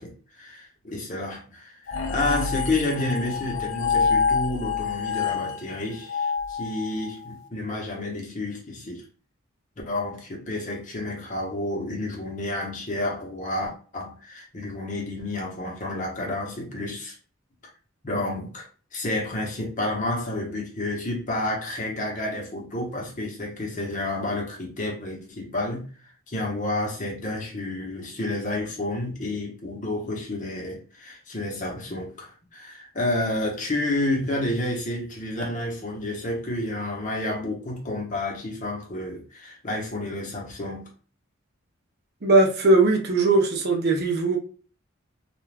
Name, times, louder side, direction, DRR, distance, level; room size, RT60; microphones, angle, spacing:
voice 1, 0.0-9.0 9.9-17.2 18.0-18.7 18.9-25.9 26.3-40.9, left 2 dB, 40° left, 0.9 m, -30 dB
sound 1, 1.9-7.3, left 5 dB, 75° left, 0.6 m, -27 dB
voice 2, 42.2-44.4, right 2 dB, 50° right, 0.7 m, -19 dB
2.4 x 2.3 x 3.2 m
head